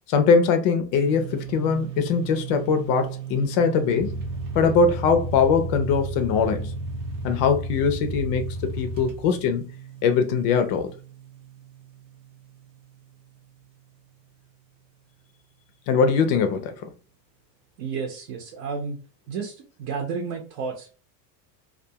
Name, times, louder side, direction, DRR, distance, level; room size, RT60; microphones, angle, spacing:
voice 1, 0.1-4.1 4.5-6.7 7.2-9.7 10.0-10.9 15.9-16.9, left 5 dB, 50° left, 0.5 m, -22 dB
sound 1, 1.0-14.5, right 11 dB, 85° right, 0.8 m, -39 dB
sound 2, 4.0-9.5, equal, 20° right, 0.4 m, -33 dB
voice 2, 17.8-19.0 19.3-21.0, right 5 dB, 50° right, 0.7 m, -32 dB
2.4 x 2.3 x 2.7 m
supercardioid pair, 135°, 50 cm